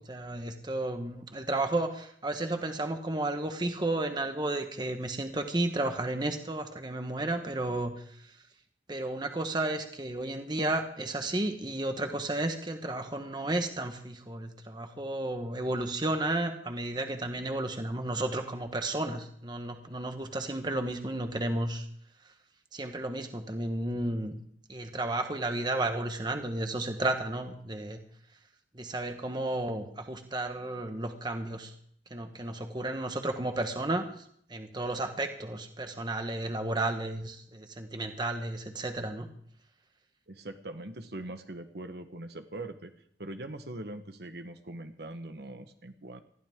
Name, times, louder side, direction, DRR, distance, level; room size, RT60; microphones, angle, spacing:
voice 1, 0.0-7.9 8.9-21.9 22.7-24.3 24.7-28.0 28.7-31.7 32.1-34.2 34.5-39.3, right 2 dB, 25° right, 6 dB, 1.4 m, -32 dB
voice 2, 40.3-42.9 43.2-46.2, right 1 dB, 65° right, 7 dB, 1.3 m, -42 dB
20.0 x 15.0 x 3.7 m, 0.64 s
head